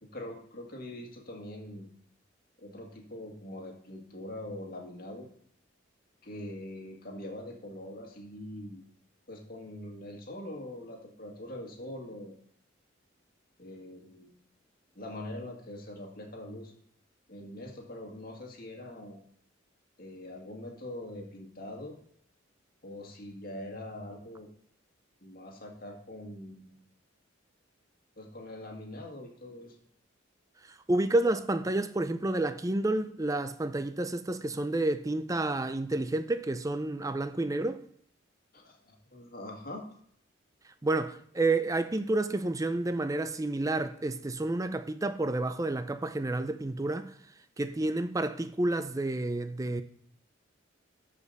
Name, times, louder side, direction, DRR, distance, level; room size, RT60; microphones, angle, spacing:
voice 1, 0.0-1.9 2.6-5.3 6.2-8.9 9.3-12.4 13.6-14.3 14.9-16.7 17.3-19.2 20.0-21.9 22.8-24.5 25.2-26.8 28.2-29.8 38.5-39.8, left 1 dB, 45° left, 1.9 m, -43 dB
voice 2, 30.7-37.8 40.8-47.1 47.6-49.8, right 2 dB, 15° right, 0.5 m, -30 dB
13.5 x 5.1 x 4.1 m
head